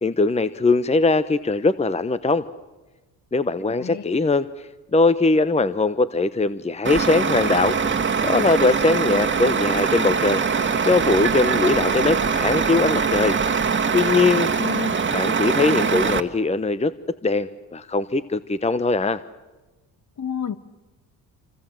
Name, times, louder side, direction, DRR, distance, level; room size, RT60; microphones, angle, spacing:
voice 1, 0.0-2.4 3.3-4.5 4.9-7.8 8.2-10.4 10.8-13.4 13.9-14.5 15.1-16.9 17.2-19.2, left 3 dB, 15° left, 14 dB, 0.9 m, -21 dB
Truck, 6.8-16.2, right 5 dB, 30° right, 1.8 m, -22 dB
voice 2, 14.6-15.0 20.2-20.6, left 8 dB, 50° left, 12 dB, 1.8 m, -30 dB
27.0 x 24.5 x 7.6 m, 1.1 s
supercardioid pair, 70°, 40 cm